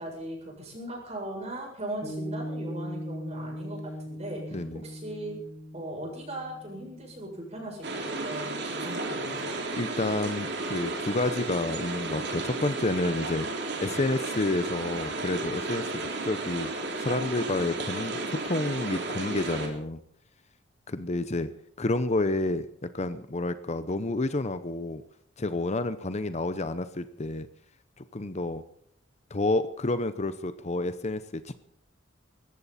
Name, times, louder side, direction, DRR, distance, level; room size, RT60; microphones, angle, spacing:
voice 1, 0.0-5.4 5.7-9.6, right 1 dB, 35° right, 0 dB, 7.6 m, -39 dB
Piano, 2.0-8.7, equal, 5° left, 5.7 m, -40 dB
voice 2, 4.5-4.8 9.8-16.7 17.0-20.0 20.9-21.5 21.8-22.7 22.9-25.0 25.4-27.5 28.0-28.6 29.3-31.6, left 2 dB, 35° left, 12 dB, 0.8 m, -30 dB
sound 1, 7.8-19.7, right 2 dB, 60° right, 3.3 m, -33 dB
20.0 x 15.0 x 4.3 m, 0.70 s
head